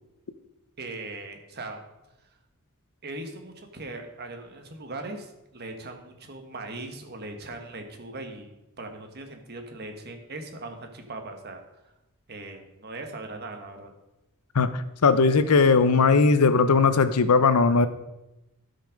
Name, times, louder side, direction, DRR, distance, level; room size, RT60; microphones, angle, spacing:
voice 1, 0.8-1.8 3.0-11.6 12.3-13.9, right 2 dB, 45° right, 5 dB, 1.4 m, -39 dB
voice 2, 14.5-17.9, left 4 dB, 85° left, 12 dB, 0.7 m, -19 dB
12.5 x 5.5 x 5.2 m, 0.95 s
head